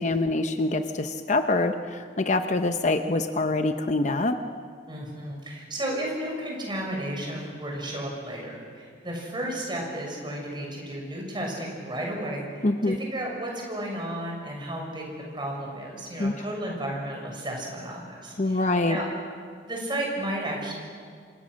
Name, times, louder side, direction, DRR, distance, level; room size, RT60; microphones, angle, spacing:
voice 1, 0.0-4.4 12.6-13.0 16.2-16.3 18.4-19.0, left 2 dB, 40° left, 7 dB, 0.9 m, -25 dB
voice 2, 4.9-19.1 19.6-20.7, right 1 dB, 25° right, -1 dB, 6.4 m, -33 dB
29.0 x 26.0 x 6.4 m, 2.1 s
head